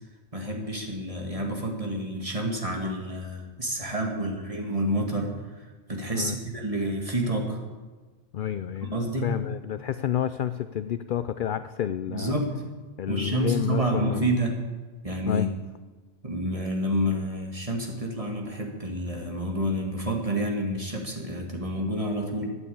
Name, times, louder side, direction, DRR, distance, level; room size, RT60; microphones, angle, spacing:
voice 1, 0.3-5.3 5.9-7.6 8.8-9.3 12.1-12.5 13.1-14.6 15.0-15.5 16.2-22.5, right 1 dB, 25° right, 1 dB, 2.2 m, -29 dB
voice 2, 8.3-8.9 9.2-12.4 13.0-14.3 15.3-15.6, left 10 dB, 60° left, 12 dB, 0.5 m, -30 dB
12.5 x 8.7 x 8.6 m, 1.3 s
omnidirectional pair, 1.3 m